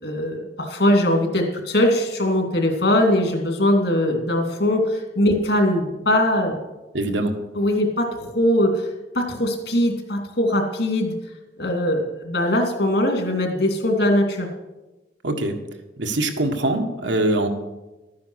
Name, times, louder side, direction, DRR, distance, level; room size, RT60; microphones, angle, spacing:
voice 1, 0.0-6.6 7.5-8.9 9.1-11.1 11.6-14.5, left 1 dB, 65° left, 3 dB, 2.7 m, -21 dB
voice 2, 6.9-7.3 15.2-15.6 16.0-17.5, right 2 dB, 85° right, 4 dB, 1.6 m, -23 dB
13.0 x 9.5 x 6.4 m, 1.1 s
head